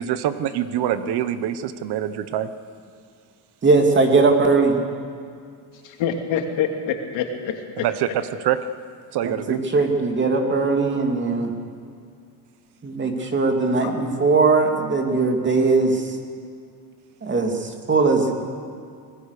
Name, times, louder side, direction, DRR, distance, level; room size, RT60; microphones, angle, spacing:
voice 1, 0.0-2.5 7.8-8.6 9.1-9.6, right 10 dB, 60° right, 12 dB, 1.2 m, -25 dB
voice 2, 3.6-4.8 9.2-11.5 12.8-16.2 17.2-18.4, right 3 dB, 25° right, 3 dB, 2.7 m, -20 dB
voice 3, 5.8-7.9 13.8-13.9 15.1-15.2, left 7 dB, 80° left, 3 dB, 3.1 m, -26 dB
26.0 x 20.5 x 6.8 m, 2.2 s
cardioid pair, 145°, 44 cm